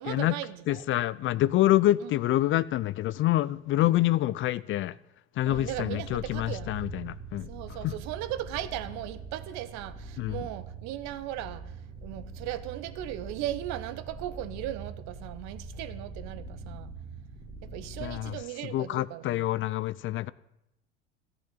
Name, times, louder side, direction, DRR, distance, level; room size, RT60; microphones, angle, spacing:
voice 1, 0.0-0.8 2.0-2.1 3.8-4.0 5.4-6.7 7.5-11.6 12.0-16.9 17.6-19.5, right 13 dB, 55° right, 1.2 m, -37 dB
voice 2, 0.7-4.9 5.4-7.5 7.8-7.9 10.2-10.5 18.0-18.4 18.7-20.3, left 15 dB, 40° left, 0.5 m, -26 dB
sound 1, 5.5-18.4, right 3 dB, 15° right, 3.1 m, -43 dB
14.0 x 7.0 x 9.8 m
hypercardioid pair, 75°, 33 cm